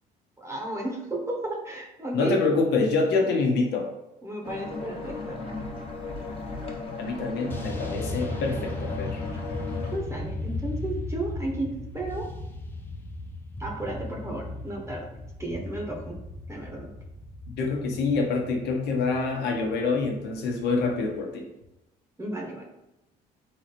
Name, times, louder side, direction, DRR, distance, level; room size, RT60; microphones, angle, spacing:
voice 1, 0.4-2.4 4.2-5.4 9.9-12.3 13.6-15.1 15.4-16.1 16.5-16.9 22.2-22.6, right 2 dB, 15° right, -1 dB, 0.9 m, -33 dB
voice 2, 2.1-3.9 7.0-9.2 17.6-21.5, left 4 dB, 80° left, 1 dB, 1.1 m, -26 dB
sound 1, 4.4-10.0, left 4 dB, 35° left, 1.2 m, -36 dB
sound 2, 5.5-6.7 7.5-21.2, left 2 dB, 10° left, 0.7 m, -37 dB
3.9 x 3.0 x 4.2 m, 0.91 s
cardioid pair, 110°, 17 cm